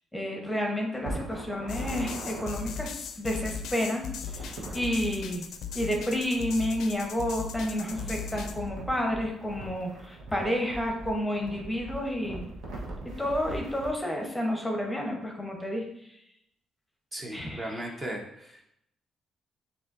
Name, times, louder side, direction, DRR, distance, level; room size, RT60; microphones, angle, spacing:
voice 1, 0.1-5.4 5.7-12.5 13.2-16.1 17.3-17.8, equal, 5° left, 1 dB, 0.9 m, -30 dB
sound 1, 1.0-2.5 4.2-4.8 7.5-13.9, right 2 dB, 80° right, 1.1 m, -41 dB
sound 2, 1.7-8.7, left 6 dB, 80° left, 0.4 m, -38 dB
voice 2, 17.1-18.6, right 1 dB, 25° right, 0 dB, 0.8 m, -37 dB
7.0 x 2.7 x 2.6 m, 0.76 s
cardioid pair, 90°, 0 cm